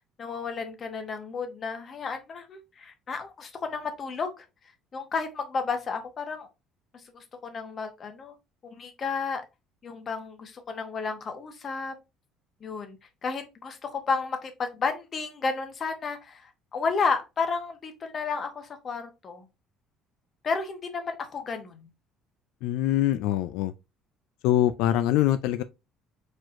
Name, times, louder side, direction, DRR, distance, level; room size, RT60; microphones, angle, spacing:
voice 1, 0.2-4.4 4.9-6.5 7.1-8.3 8.6-9.4 9.8-11.9 12.6-19.5 20.4-21.9, left 4 dB, 35° left, 1.0 m, -32 dB
voice 2, 22.6-23.7 24.4-25.6, left 13 dB, 80° left, 0.3 m, -24 dB
4.4 x 4.3 x 2.5 m
cardioid pair, 145°, 0 cm